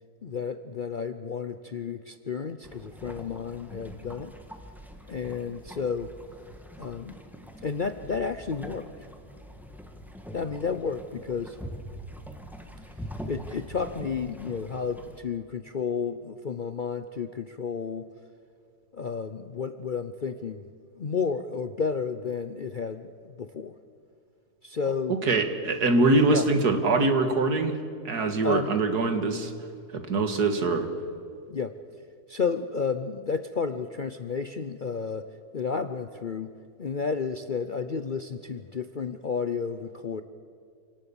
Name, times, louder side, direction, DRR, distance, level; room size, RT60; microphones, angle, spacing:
voice 1, 0.2-4.3 5.1-6.1 6.8-7.2 7.6-8.9 10.3-11.6 13.3-18.1 18.9-20.7 20.9-23.7 24.6-25.2 26.2-26.5 28.4-28.8 31.5-31.7 32.3-35.3 35.5-36.5 36.8-40.2, left 5 dB, 50° left, 9 dB, 0.6 m, -31 dB
sound 1, 2.6-15.2, equal, ahead, 1.6 m, -44 dB
voice 2, 25.1-27.8 28.0-29.5 29.9-30.9, right 3 dB, 75° right, 7 dB, 2.3 m, -23 dB
27.0 x 18.0 x 7.1 m, 2.3 s
omnidirectional pair, 1.7 m